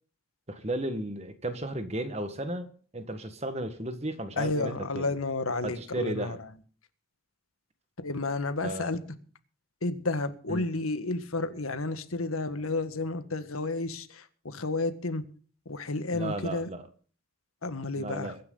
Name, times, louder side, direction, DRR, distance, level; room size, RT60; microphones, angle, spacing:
voice 1, 0.5-5.1 5.6-6.4 8.6-8.9 10.5-10.6 16.1-16.8 18.0-18.4, right 1 dB, 30° right, 9 dB, 1.6 m, -34 dB
voice 2, 4.4-6.4 8.0-9.0 9.8-15.2 15.7-16.7 17.6-18.3, left 2 dB, 85° left, 10 dB, 1.7 m, -31 dB
22.5 x 10.0 x 4.0 m, 0.42 s
head